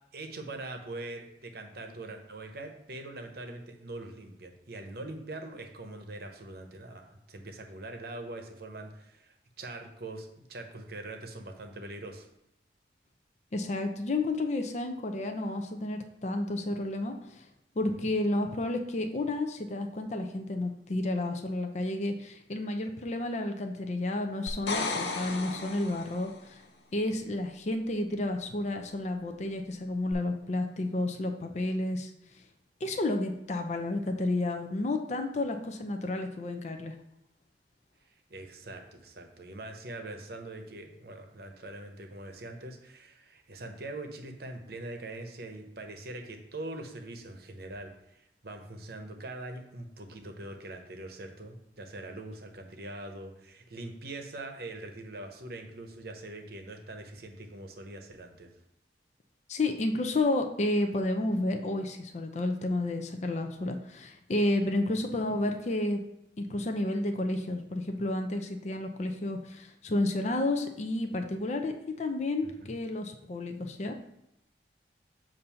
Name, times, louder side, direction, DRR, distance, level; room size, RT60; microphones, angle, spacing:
voice 1, 0.1-12.3 17.8-18.1 38.3-58.5 72.4-72.7, right 2 dB, 60° right, 5 dB, 0.8 m, -43 dB
voice 2, 13.5-17.4 17.8-26.6 26.9-32.1 32.8-36.9 59.5-66.0 66.4-73.9, left 2 dB, 40° left, 5 dB, 0.5 m, -31 dB
sound 1, 24.5-26.4 30.1-30.2, left 3 dB, 80° left, 0.8 m, -34 dB
7.1 x 2.6 x 5.6 m, 0.83 s
head